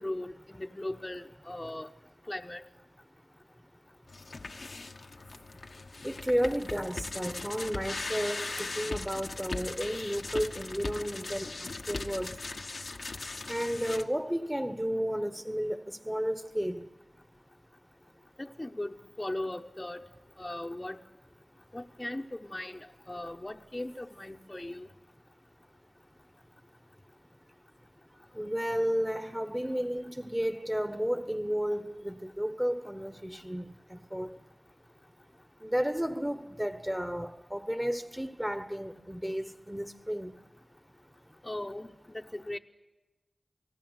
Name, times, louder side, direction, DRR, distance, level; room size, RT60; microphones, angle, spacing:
voice 1, 0.0-1.9 2.3-2.6 18.4-20.0 20.4-21.0 21.7-22.8 23.1-24.9 41.4-42.6, left 1 dB, 30° left, 1.0 m, -38 dB
sound 1, 4.1-14.0, left 3 dB, 80° left, 1.3 m, -39 dB
voice 2, 6.0-12.4 13.5-16.9 28.3-34.4 35.6-40.3, equal, 10° right, 1.2 m, -32 dB
29.0 x 19.0 x 8.1 m
wide cardioid pair, 60°, 0 cm